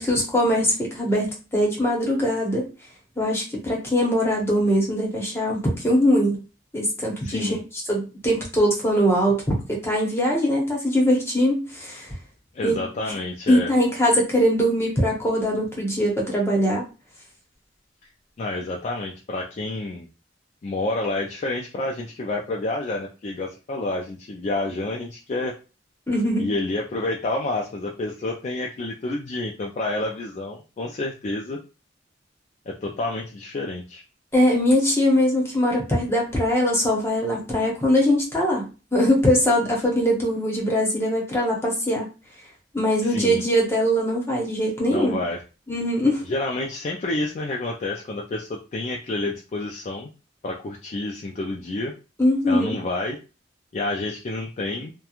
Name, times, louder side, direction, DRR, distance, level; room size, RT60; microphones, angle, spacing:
voice 1, 0.0-2.7 3.2-6.4 6.7-9.4 9.7-12.1 12.6-12.8 13.5-16.9 26.1-26.5 34.3-42.1 42.7-45.2 45.7-46.2 52.2-52.8, equal, 15° left, -3 dB, 0.9 m, -22 dB
voice 2, 7.2-7.6 12.5-13.7 18.4-20.1 20.6-25.6 26.4-31.6 32.7-34.0 43.0-43.4 44.9-45.4 46.2-50.1 50.4-52.0 52.5-53.2 53.7-54.9, left 2 dB, 40° left, -1 dB, 0.3 m, -29 dB
2.8 x 2.2 x 2.4 m, 0.32 s
head